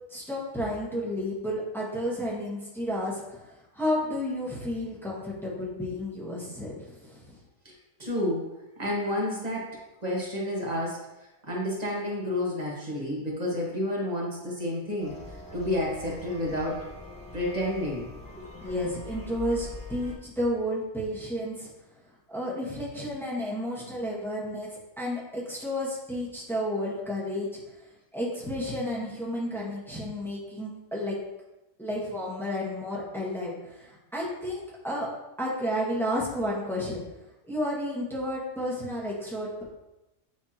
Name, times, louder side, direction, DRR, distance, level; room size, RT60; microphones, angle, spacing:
voice 1, 0.1-7.4 18.4-21.7 22.3-27.5 28.1-31.2 31.8-35.1 35.4-37.0 37.5-39.6, equal, ahead, -6 dB, 1.6 m, -32 dB
voice 2, 8.0-8.5 8.8-11.1 11.4-15.2 15.5-16.9 17.3-18.1, left 1 dB, 30° right, -4 dB, 1.6 m, -30 dB
sound 1, 15.0-20.2, left 2 dB, 25° left, 0.5 m, -43 dB
9.4 x 3.5 x 2.9 m, 0.97 s
omnidirectional pair, 1.4 m